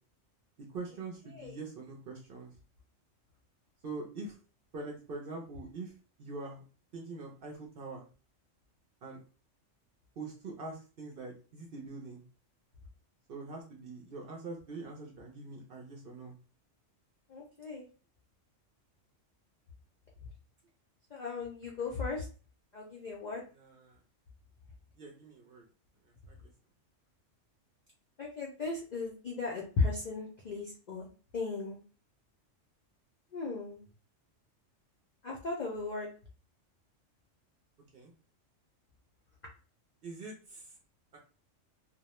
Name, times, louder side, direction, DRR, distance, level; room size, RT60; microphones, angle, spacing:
voice 1, 0.7-2.5 3.8-4.4 4.7-5.9 6.2-6.6 6.9-8.0 9.0-9.2 10.2-12.2 13.3-16.3 23.5-24.0 25.0-25.6 26.3-26.4 37.9-38.1 40.0-40.6 41.1-41.2, right 3 dB, 60° right, 0 dB, 0.7 m, -43 dB
voice 2, 17.3-17.8 21.1-22.2 22.7-23.4 28.2-31.1 31.3-31.8 33.3-33.8 35.2-36.1, left 3 dB, 60° left, -3 dB, 0.4 m, -36 dB
2.3 x 2.0 x 2.9 m, 0.36 s
omnidirectional pair, 1.3 m